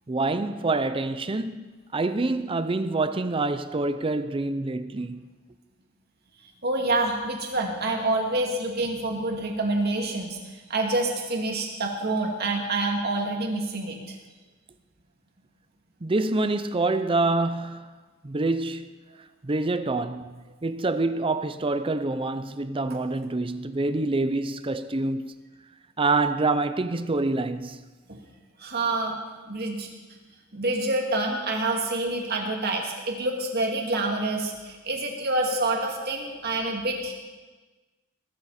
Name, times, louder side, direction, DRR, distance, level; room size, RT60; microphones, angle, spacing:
voice 1, 0.1-1.6 1.9-5.3 16.0-17.9 18.2-18.9 19.4-25.3 26.0-27.8, right 2 dB, 25° right, 0.6 m, -26 dB
voice 2, 6.6-14.1 28.6-29.2 29.5-29.9 30.5-37.1, right 2 dB, 50° right, 2.4 m, -27 dB
20.5 x 13.0 x 4.3 m
head